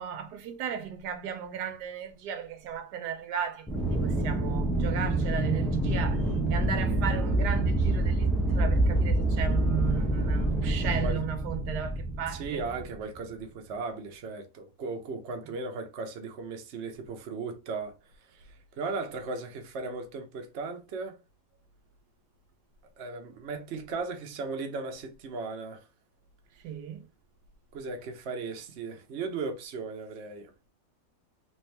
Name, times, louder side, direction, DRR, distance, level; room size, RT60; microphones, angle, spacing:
voice 1, 0.0-6.2 6.5-12.7 26.6-27.0, right 8 dB, 80° right, 1.2 m, -36 dB
Aircraft, 3.7-13.1, right 1 dB, ahead, 0.4 m, -27 dB
voice 2, 10.8-11.2 12.3-21.2 23.0-25.9 27.7-30.5, right 4 dB, 50° right, 0.9 m, -37 dB
3.5 x 2.9 x 3.3 m
omnidirectional pair, 1.8 m